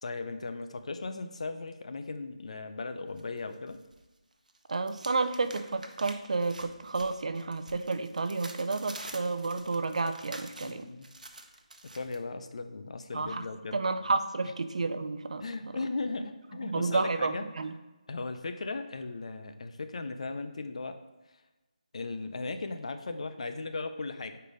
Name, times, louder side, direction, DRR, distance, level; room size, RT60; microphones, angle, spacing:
voice 1, 0.0-3.8 10.6-11.1 11.9-13.8 14.4-14.5 15.4-17.5 18.1-21.0 21.9-24.4, left 3 dB, 55° left, 8 dB, 0.6 m, -37 dB
sound 1, 3.2-4.0 4.3-12.2, right 2 dB, 85° right, 0.8 m, -48 dB
voice 2, 4.7-10.9 13.1-13.4 13.7-15.4 16.7-17.7, right 3 dB, 60° right, 10 dB, 0.5 m, -31 dB
5.0 x 4.5 x 5.1 m, 1.1 s
figure-of-eight pair, 165°, 4 cm